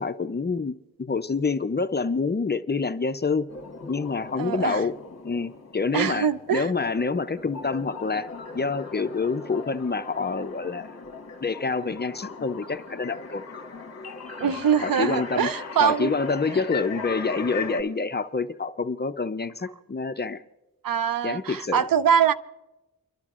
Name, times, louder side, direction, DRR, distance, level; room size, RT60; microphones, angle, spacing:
voice 1, 0.0-3.5 3.9-4.9 5.2-8.3 8.5-10.9 11.4-13.4 14.4-14.5 14.8-15.5 15.8-20.4 21.2-21.8, left 4 dB, 30° left, 11 dB, 0.5 m, -27 dB
sound 1, 3.5-17.8, left 4 dB, 45° left, 1.1 m, -39 dB
voice 2, 4.4-4.8 5.9-6.7 14.4-16.1 20.8-22.3, right 8 dB, 70° right, 12 dB, 0.5 m, -23 dB
30.0 x 12.0 x 2.4 m, 1.0 s
wide cardioid pair, 90°, 36 cm